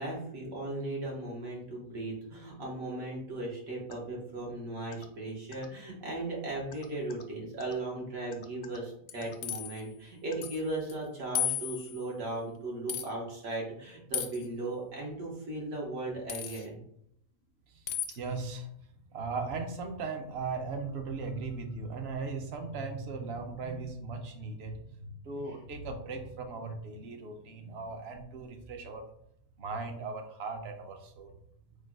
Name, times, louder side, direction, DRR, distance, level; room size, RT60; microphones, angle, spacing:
voice 1, 0.0-16.8, right 2 dB, 80° right, -3 dB, 1.8 m, -37 dB
sound 1, 3.9-4.0 4.9-5.1 5.5-5.7 6.7-7.2 7.6-7.7 8.3-8.8 9.2-9.4 10.3-10.5, left 6 dB, 60° left, 0.5 m, -49 dB
sound 2, 9.1-9.8 10.4-10.6 10.9-11.0 11.4-12.0 12.9-13.1 14.1-14.5 16.3-16.7 17.9-18.2, left 10 dB, 80° left, 1.1 m, -34 dB
voice 2, 17.7-18.7 19.1-29.1 29.6-31.3, right 4 dB, 55° right, 5 dB, 0.9 m, -38 dB
4.5 x 2.3 x 4.6 m, 0.72 s
omnidirectional pair, 1.4 m